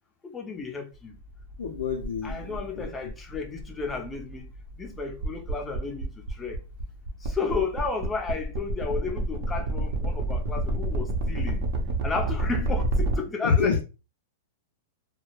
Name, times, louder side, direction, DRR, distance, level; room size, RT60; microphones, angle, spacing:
voice 1, 0.2-1.2 2.2-4.5 4.8-6.6 7.2-11.6 12.0-13.8, left 4 dB, 15° left, 0.5 m, -33 dB
sound 1, 1.1-13.2, right 1 dB, 50° right, 0.6 m, -30 dB
voice 2, 1.6-2.9 13.4-13.8, left 6 dB, 80° left, 0.4 m, -27 dB
2.2 x 2.0 x 3.0 m
hypercardioid pair, 140°, 0 cm